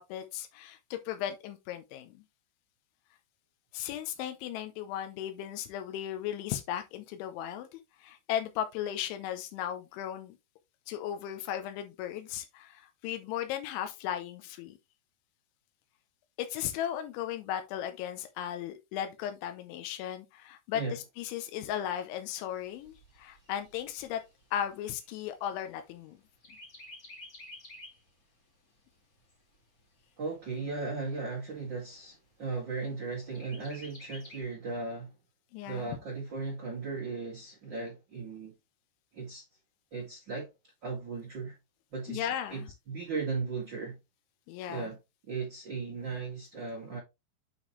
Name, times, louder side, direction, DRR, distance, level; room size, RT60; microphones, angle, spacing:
voice 1, 0.0-2.2 3.7-10.4 10.9-14.8 16.4-24.2 24.5-26.2 35.5-36.0 42.1-42.7 44.5-44.9, left 10 dB, 90° left, 3.2 m, -36 dB
Chirp tweet, 22.3-26.0 26.4-28.1 28.5-28.6 29.0-30.0 30.6-30.7 31.0-31.1 31.6-32.1 33.3-34.4, left 1 dB, 30° left, 1.8 m, -51 dB
voice 2, 30.2-35.1 35.6-38.5 39.1-39.4 39.9-40.5 40.8-41.5 41.9-44.0 44.7-45.0 45.3-47.0, right 4 dB, 55° right, 1.2 m, -37 dB
8.4 x 4.4 x 3.2 m
omnidirectional pair, 5.2 m